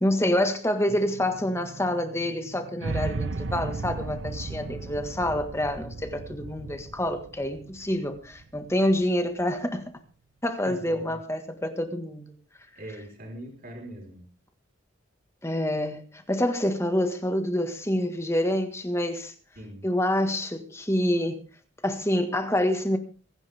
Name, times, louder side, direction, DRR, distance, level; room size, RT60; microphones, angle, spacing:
voice 1, 0.0-9.9 10.4-12.3 15.4-19.3 19.8-21.4 21.8-23.0, left 1 dB, 15° left, 1.7 m, -27 dB
sound 1, 0.9-10.4, right 3 dB, 25° right, 3.1 m, -52 dB
sound 2, 2.8-8.9, right 3 dB, 70° right, 0.9 m, -35 dB
voice 2, 10.6-11.2 12.7-14.2 19.6-19.9, equal, 45° right, 4.6 m, -41 dB
25.0 x 10.5 x 3.6 m
head